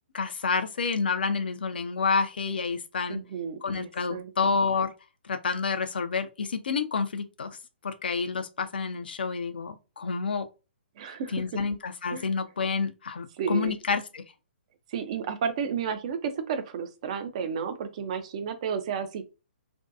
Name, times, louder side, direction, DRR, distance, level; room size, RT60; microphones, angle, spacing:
voice 1, 0.1-3.2 3.6-4.9 5.2-7.5 7.8-10.5 11.3-14.2, left 5 dB, 60° left, 0.4 m, -29 dB
voice 2, 3.1-4.3 11.0-11.6 12.1-12.3 13.4-13.8 14.9-19.2, right 7 dB, 35° right, 0.4 m, -32 dB
2.6 x 2.2 x 2.4 m
figure-of-eight pair, 125°, 6 cm